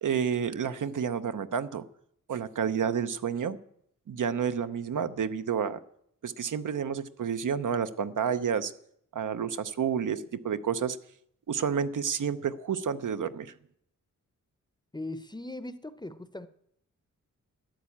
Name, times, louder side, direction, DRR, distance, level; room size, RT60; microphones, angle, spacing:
voice 1, 0.0-1.8 2.3-3.6 4.1-5.8 6.2-8.7 9.1-11.0 11.5-13.5, right 7 dB, 70° right, 12 dB, 0.8 m, -30 dB
voice 2, 14.9-16.5, left 2 dB, 15° left, 12 dB, 0.6 m, -39 dB
13.0 x 10.5 x 8.5 m, 0.70 s
wide cardioid pair, 180°, 32 cm